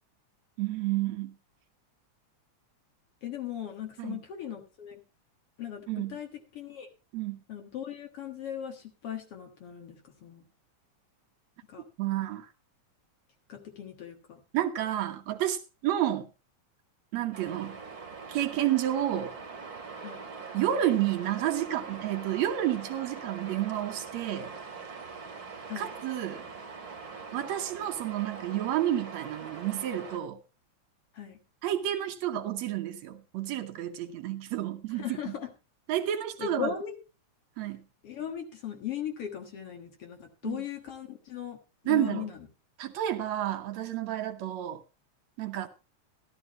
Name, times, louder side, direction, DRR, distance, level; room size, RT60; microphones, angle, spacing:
voice 1, 0.6-1.4 4.0-4.2 5.9-6.2 7.1-7.4 12.0-12.5 14.5-16.3 17.1-17.8 18.3-19.3 20.5-24.5 25.8-26.5 27.3-30.4 31.6-35.3 35.9-36.7 37.6-37.8 40.4-40.6 41.9-42.3 42.8-44.8 45.4-45.7, right 12 dB, 75° right, 2.1 m, -30 dB
voice 2, 3.2-5.0 5.6-6.3 6.5-6.9 7.5-10.4 11.7-11.8 13.5-14.4 20.0-20.2 25.7-25.9 31.1-31.4 34.9-35.5 36.4-36.9 38.0-41.6 41.8-42.4, left 9 dB, 55° left, 2.3 m, -38 dB
sound 1, 17.3-30.2, right 5 dB, 45° right, 2.6 m, -43 dB
13.0 x 12.5 x 3.0 m
omnidirectional pair, 3.3 m